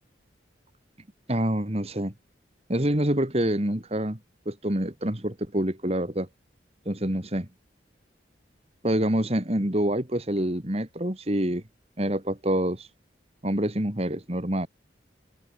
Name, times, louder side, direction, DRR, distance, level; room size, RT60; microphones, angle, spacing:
voice 1, 1.3-2.1 2.7-4.2 4.5-6.3 6.9-7.5 8.8-11.6 12.0-12.9 13.4-14.7, right 1 dB, 35° right, 2.6 m, -26 dB
head